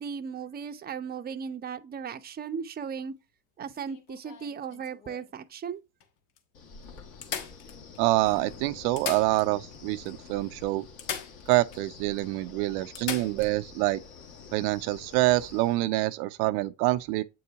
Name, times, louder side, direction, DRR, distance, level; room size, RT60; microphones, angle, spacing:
voice 1, 0.0-3.1 3.6-5.8, right 6 dB, 20° right, 0.6 m, -36 dB
sound 1, 3.7-5.3 6.0-6.1 6.4-6.5 7.2-8.2 8.8-9.8 10.1-10.2 11.0-11.8 12.2-12.3 12.9-13.5 15.5-15.7, left 8 dB, 70° left, 1.4 m, -38 dB
Wind, 6.5-15.8, left 5 dB, 55° left, 2.2 m, -48 dB
voice 2, 8.0-10.8 11.5-14.0 14.5-17.2, right 18 dB, 80° right, 0.6 m, -26 dB
7.8 x 4.6 x 2.8 m
supercardioid pair, 105°, 45 cm